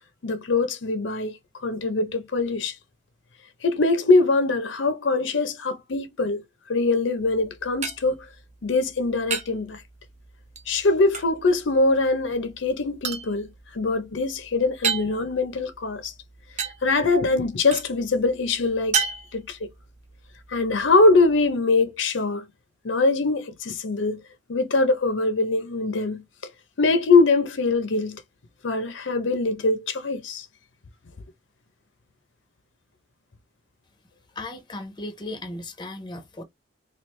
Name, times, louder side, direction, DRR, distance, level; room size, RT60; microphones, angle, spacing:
voice 1, 0.2-1.4 1.6-2.7 3.6-6.4 6.7-8.2 8.6-9.8 10.7-16.1 16.8-19.0 19.3-19.7 20.5-22.4 22.8-24.2 24.5-26.2 26.8-28.2 28.6-30.5, left 3 dB, 80° left, 0.6 m, -22 dB
sound 1, 7.2-21.5, right 6 dB, 40° right, 0.8 m, -35 dB
voice 2, 34.4-36.4, left 2 dB, 25° left, 0.6 m, -36 dB
3.1 x 2.4 x 3.2 m
head